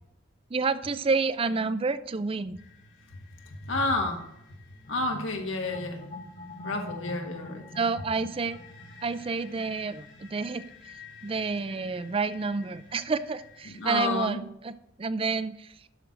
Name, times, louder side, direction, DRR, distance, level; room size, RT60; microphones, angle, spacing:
voice 1, 0.5-2.6 7.7-8.6 9.0-10.7 11.2-15.7, right 4 dB, 30° right, 14 dB, 0.4 m, -29 dB
sound 1, 2.6-14.0, left 5 dB, 60° left, 2.8 m, -53 dB
voice 2, 3.6-4.2 4.9-6.1 6.6-7.7 13.6-14.4, left 2 dB, 80° left, 3 dB, 1.6 m, -30 dB
sound 2, 4.8-10.1, left 1 dB, 40° left, 1.5 m, -44 dB
12.0 x 6.1 x 3.8 m, 0.82 s
head